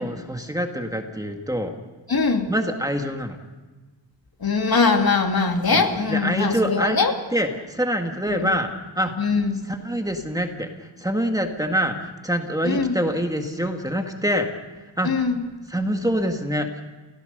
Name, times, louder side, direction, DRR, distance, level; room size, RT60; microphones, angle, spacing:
voice 1, 0.0-1.7 2.5-3.4 5.7-7.0 7.3-8.7 9.0-9.1 9.6-14.5 15.0-15.1 15.7-16.8, equal, 5° right, 4 dB, 1.8 m, -25 dB
voice 2, 2.1-2.5 4.4-7.1 8.3-8.5 9.2-9.6 12.6-13.0 15.0-15.4, left 4 dB, 45° left, 4 dB, 2.5 m, -21 dB
28.5 x 16.5 x 6.8 m, 1.3 s
wide cardioid pair, 120°, 48 cm